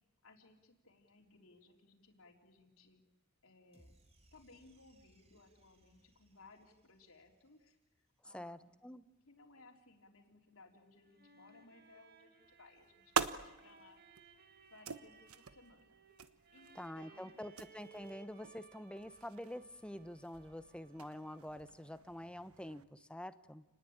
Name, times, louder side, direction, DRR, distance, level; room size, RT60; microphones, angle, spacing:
voice 1, 0.2-3.0 3.4-3.9 4.3-8.7 9.3-14.0 14.7-16.0 16.5-17.5, left 3 dB, 70° left, 3 dB, 3.8 m, -62 dB
sound 1, 3.7-8.1, right 1 dB, 30° right, 3.5 m, -69 dB
voice 2, 8.3-9.0 16.7-23.6, left 1 dB, 5° left, 12 dB, 0.9 m, -47 dB
sound 2, 10.8-21.7, right 5 dB, 45° right, 2.2 m, -63 dB
sound 3, 12.4-22.8, right 6 dB, 80° right, 1.3 m, -45 dB
29.0 x 20.0 x 8.8 m, 1.0 s
head